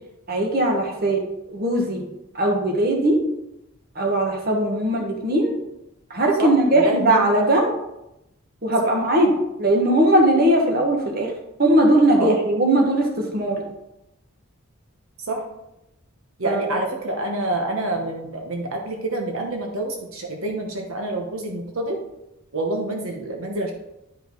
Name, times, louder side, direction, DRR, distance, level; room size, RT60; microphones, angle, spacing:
voice 1, 0.3-1.2 1.5-2.0 2.3-3.2 3.9-5.5 6.1-7.7 8.6-9.3 9.6-11.3 11.6-13.6 16.4-16.8, right 1 dB, 45° right, 1 dB, 1.5 m, -19 dB
voice 2, 6.8-7.3 8.8-8.9 12.2-12.4 15.2-15.4 16.4-22.0 22.5-23.7, right 2 dB, 80° right, 2 dB, 1.1 m, -27 dB
10.0 x 5.2 x 3.9 m, 0.87 s
head